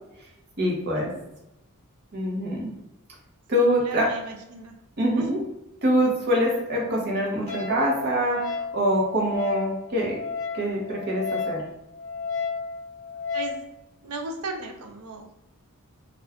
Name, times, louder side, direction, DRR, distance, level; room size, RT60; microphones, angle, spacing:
voice 1, 0.6-1.1 2.1-2.7 3.5-4.1 5.0-5.4 5.8-10.2 10.5-11.6, equal, 50° right, -2 dB, 0.9 m, -24 dB
voice 2, 3.6-4.7 5.2-5.4 13.3-13.5 14.0-15.3, right 2 dB, 90° right, 3 dB, 0.6 m, -36 dB
Wind instrument woodwind instrument, 7.5-13.6, left 5 dB, 35° left, 0.4 m, -33 dB
2.4 x 2.3 x 3.4 m, 0.91 s
head